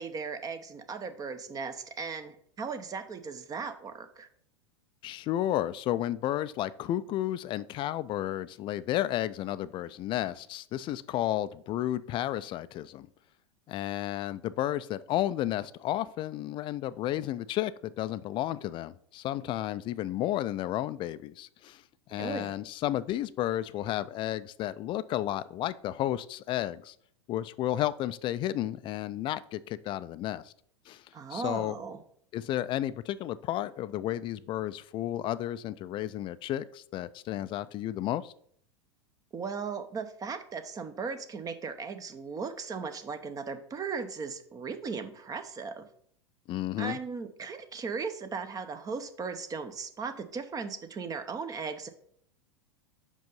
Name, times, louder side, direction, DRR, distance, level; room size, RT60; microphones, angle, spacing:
voice 1, 0.0-4.3 22.2-22.5 31.1-32.0 39.3-45.8 46.8-51.9, right 5 dB, 25° right, 9 dB, 0.8 m, -37 dB
voice 2, 5.0-13.1 13.7-21.8 22.1-26.9 27.3-30.5 30.9-31.0 31.3-31.8 32.3-38.3 46.5-47.0, left 13 dB, 35° left, 15 dB, 0.4 m, -32 dB
5.4 x 5.2 x 5.3 m, 0.64 s
hypercardioid pair, 90°, 15 cm